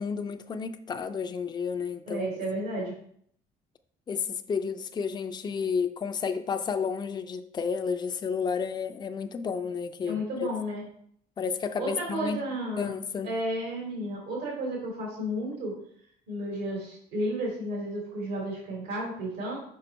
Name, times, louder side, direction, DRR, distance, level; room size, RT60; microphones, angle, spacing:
voice 1, 0.0-2.3 2.8-2.9 4.1-10.5 11.4-13.3, left 6 dB, 25° left, 0.5 m, -31 dB
voice 2, 2.0-2.9 10.1-10.8 11.8-12.9 13.2-15.8 16.3-19.6, right 1 dB, 75° right, 2.9 m, -32 dB
5.6 x 5.2 x 4.0 m
cardioid pair, 110°, 17 cm